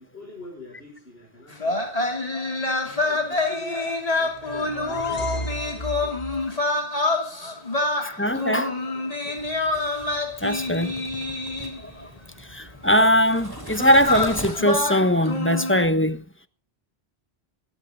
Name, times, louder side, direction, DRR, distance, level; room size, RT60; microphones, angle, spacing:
voice 1, 0.0-2.4 2.7-7.2, left 2 dB, 70° left, 5.5 m, -46 dB
sound 1, 1.5-12.0 13.0-13.2 13.7-15.9, left 2 dB, 35° left, 3.0 m, -27 dB
sound 2, 4.2-6.5, right 1 dB, 50° left, 2.5 m, -34 dB
voice 2, 8.2-8.9 10.4-10.9 11.8-12.1 12.5-16.2, equal, 10° left, 1.0 m, -21 dB
sound 3, 9.4-14.9, equal, 20° right, 3.5 m, -40 dB
18.5 x 16.5 x 3.7 m
omnidirectional pair, 1.1 m